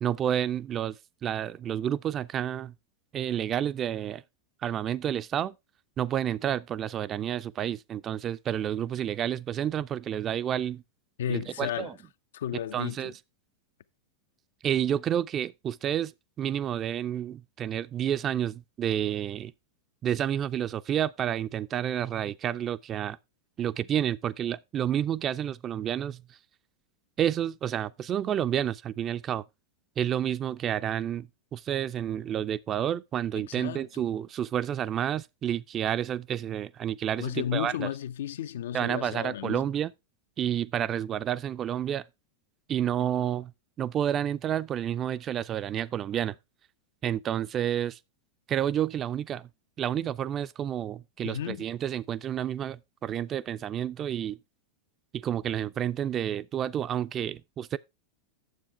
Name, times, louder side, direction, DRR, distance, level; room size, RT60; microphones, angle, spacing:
voice 1, 0.0-2.7 3.1-4.2 4.6-5.5 6.0-10.8 11.3-11.9 12.7-13.1 14.6-16.1 16.4-19.5 20.0-23.2 23.6-26.2 27.2-29.4 30.0-37.9 38.7-39.9 40.4-42.0 42.7-43.5 43.8-46.4 47.0-48.0 48.5-49.5 49.8-54.4 55.1-57.8, right 10 dB, 30° right, 0.4 m, -30 dB
voice 2, 11.2-12.0 12.3-13.1 33.4-34.0 37.2-39.6 51.2-51.6, left 10 dB, 60° left, 0.4 m, -33 dB
9.3 x 7.4 x 3.3 m
figure-of-eight pair, 90°, 0 cm